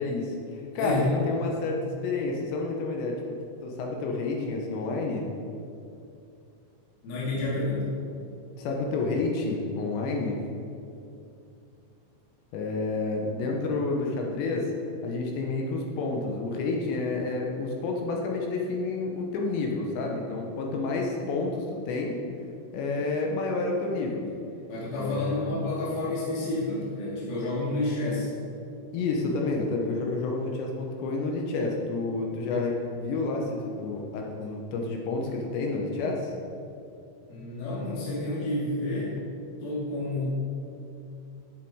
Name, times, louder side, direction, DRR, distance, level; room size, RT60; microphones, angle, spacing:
voice 1, 0.0-3.2 3.6-5.3 8.6-10.4 12.5-14.7 15.0-22.2 22.7-24.3 24.9-25.5 28.9-36.3, left 3 dB, 75° left, 0 dB, 2.8 m, -29 dB
voice 2, 7.0-7.8 24.7-28.3 37.3-39.1 39.6-40.2, left 2 dB, 50° left, -7 dB, 4.1 m, -30 dB
11.0 x 8.0 x 4.6 m, 2.6 s
omnidirectional pair, 5.9 m